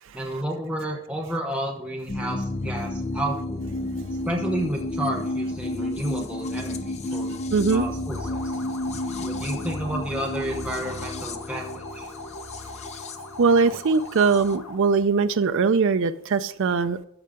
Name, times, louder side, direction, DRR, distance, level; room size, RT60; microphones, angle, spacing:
voice 1, 0.1-3.6 4.2-7.4 7.7-8.4 9.2-12.1, right 1 dB, 5° right, -1 dB, 0.9 m, -31 dB
sound 1, 2.1-14.5, left 1 dB, 30° left, 0.5 m, -32 dB
voice 2, 7.5-7.9 13.4-17.0, right 4 dB, 60° right, 10 dB, 0.4 m, -21 dB
sound 2, 8.1-14.9, left 2 dB, 80° left, 1.5 m, -41 dB
13.0 x 5.6 x 3.6 m, 0.74 s
head